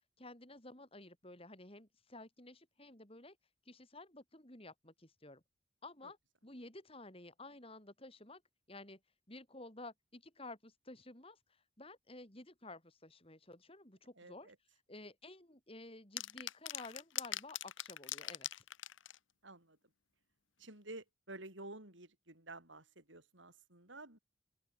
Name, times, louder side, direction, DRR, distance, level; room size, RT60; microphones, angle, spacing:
voice 1, 0.2-3.4 3.7-5.4 5.8-6.2 6.4-8.4 8.7-9.0 9.3-11.4 11.8-14.5 14.9-18.6, left 2 dB, 30° left, 4.3 m, -53 dB
voice 2, 14.2-14.6 19.4-19.8 20.6-24.2, right 2 dB, 70° right, 7.0 m, -51 dB
sound 1, 16.2-19.2, left 13 dB, 75° left, 1.2 m, -41 dB
open air
head